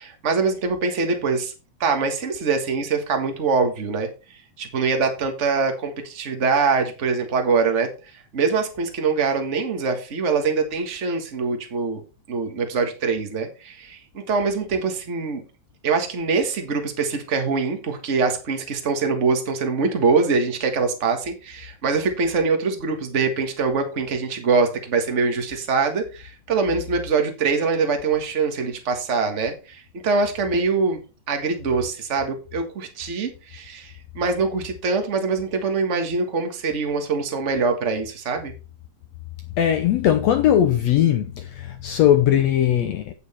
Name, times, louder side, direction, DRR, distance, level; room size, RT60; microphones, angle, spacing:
voice 1, 0.0-1.5 1.8-4.1 4.6-7.9 8.3-12.0 12.3-15.4 15.8-31.0 31.3-38.5, right 4 dB, 50° right, 0.8 m, -23 dB
voice 2, 39.6-43.1, left 10 dB, 75° left, 1.5 m, -19 dB
8.8 x 8.0 x 4.3 m
omnidirectional pair, 4.0 m